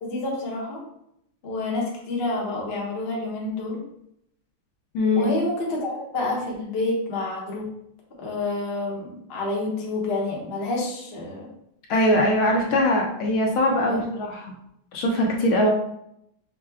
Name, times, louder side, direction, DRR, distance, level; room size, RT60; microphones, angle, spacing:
voice 1, 0.0-0.8 1.4-3.8 5.1-7.7 8.2-11.5 13.9-14.0, left 2 dB, 45° left, -3 dB, 0.8 m, -28 dB
voice 2, 4.9-5.3 11.9-14.5 14.9-15.7, left 1 dB, 70° left, 0 dB, 1.4 m, -21 dB
5.8 x 2.2 x 3.4 m, 0.77 s
omnidirectional pair, 2.4 m